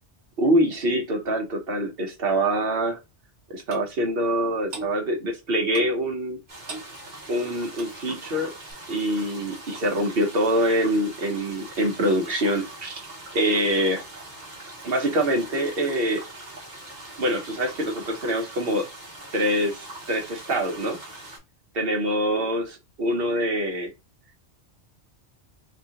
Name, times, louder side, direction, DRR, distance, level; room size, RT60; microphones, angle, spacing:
voice 1, 0.4-3.0 3.5-6.4 7.3-8.5 8.9-13.0 13.3-14.0 14.8-16.2 17.2-18.9 19.3-21.0 21.7-23.9, equal, 60° right, 1.1 m, -25 dB
Clock, 3.7-3.9 4.7-4.9 5.7-6.0 6.7-6.9 7.7-8.0 8.7-8.8, right 3 dB, 85° right, 1.2 m, -37 dB
sound 1, 6.5-21.4, right 2 dB, 45° right, 1.2 m, -42 dB
3.6 x 2.9 x 2.8 m
omnidirectional pair, 1.2 m